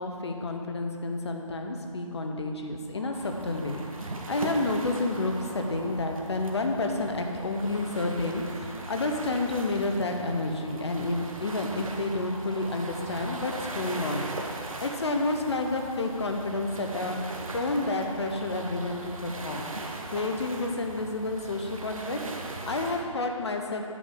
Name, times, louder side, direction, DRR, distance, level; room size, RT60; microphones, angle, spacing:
voice 1, 0.0-17.2 17.5-19.7 20.1-23.9, left 2 dB, 50° left, 4 dB, 0.9 m, -30 dB
sound 1, 2.9-22.3, right 1 dB, 40° right, 1.1 m, -49 dB
sound 2, 3.1-23.0, right 2 dB, 70° right, 1.0 m, -40 dB
8.6 x 3.7 x 6.8 m, 2.3 s
figure-of-eight pair, 165°, 18 cm